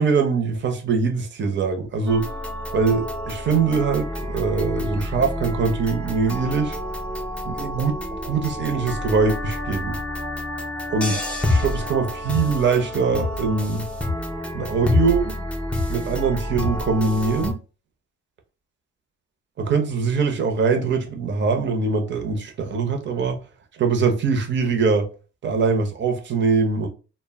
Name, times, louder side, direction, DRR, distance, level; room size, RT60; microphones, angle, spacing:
voice 1, 0.0-2.3 2.7-6.8 7.4-10.0 10.9-11.2 11.5-13.9 14.5-15.4 15.9-17.6 19.6-23.4 23.7-25.1 25.4-26.9, right 5 dB, 40° right, 0.6 m, -22 dB
sound 1, 2.1-17.5, left 1 dB, 5° left, 0.5 m, -28 dB
2.1 x 2.1 x 3.3 m
cardioid pair, 90°, 30 cm